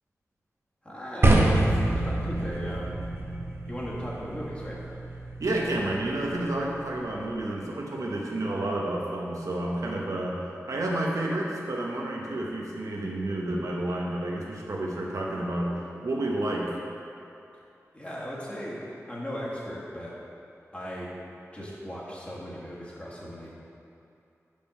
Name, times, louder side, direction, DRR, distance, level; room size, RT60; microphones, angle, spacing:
voice 1, 0.8-3.0 3.7-4.8 17.5-17.6 17.9-18.8 19.1-20.1 20.7-21.1 21.5-23.5, equal, 20° left, -6 dB, 1.6 m, -37 dB
sound 1, 1.2-7.4, right 2 dB, 50° right, 0.8 m, -27 dB
voice 2, 5.4-10.4 10.7-15.7 16.0-16.7, right 1 dB, 90° right, -2 dB, 0.9 m, -30 dB
5.3 x 5.2 x 5.4 m, 2.6 s
wide cardioid pair, 75°, 5 cm